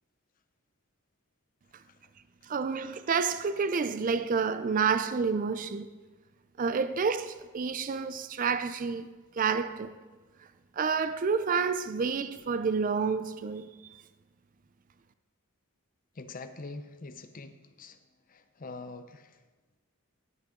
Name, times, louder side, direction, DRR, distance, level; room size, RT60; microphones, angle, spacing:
voice 1, 2.5-5.9 6.6-9.1 9.4-9.9 10.8-13.7, right 5 dB, 40° right, 0.4 m, -29 dB
voice 2, 16.1-18.0 18.3-19.4, left 3 dB, 40° left, 0.6 m, -44 dB
18.0 x 6.4 x 3.8 m
head